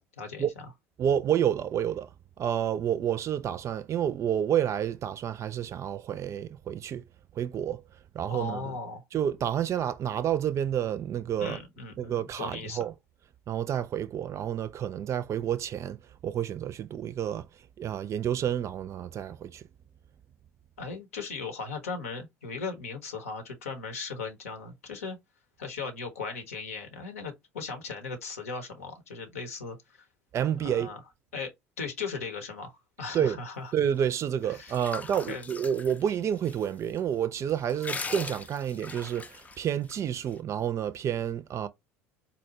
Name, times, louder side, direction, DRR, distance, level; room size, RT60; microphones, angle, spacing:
voice 1, 0.2-0.5 8.3-9.0 11.4-12.8 20.8-25.2 25.6-30.1 30.6-31.0 31.3-33.7 34.5-35.0 35.3-35.4, left 4 dB, 80° left, 0.9 m, -38 dB
voice 2, 1.0-2.1 2.4-7.0 7.4-7.8 8.1-8.7 9.1-11.6 12.0-12.9 13.5-16.0 16.2-17.5 17.8-19.6 30.3-30.9 33.1-33.4 33.7-41.7, right 9 dB, 40° right, 0.4 m, -29 dB
sound 1, 34.2-36.6 37.0-37.1 37.5-40.0, left 4 dB, 20° left, 0.4 m, -40 dB
4.1 x 2.2 x 2.7 m
hypercardioid pair, 65°, 8 cm